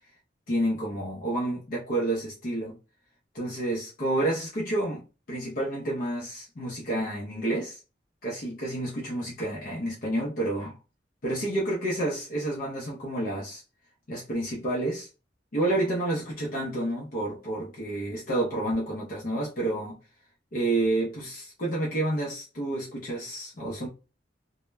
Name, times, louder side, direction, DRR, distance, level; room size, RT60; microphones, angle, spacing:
voice 1, 0.5-2.8 3.3-7.8 8.2-10.7 11.2-13.6 14.1-15.1 15.5-20.0 20.5-23.9, right 1 dB, 50° left, 0.6 m, -29 dB
2.1 x 2.0 x 3.2 m
head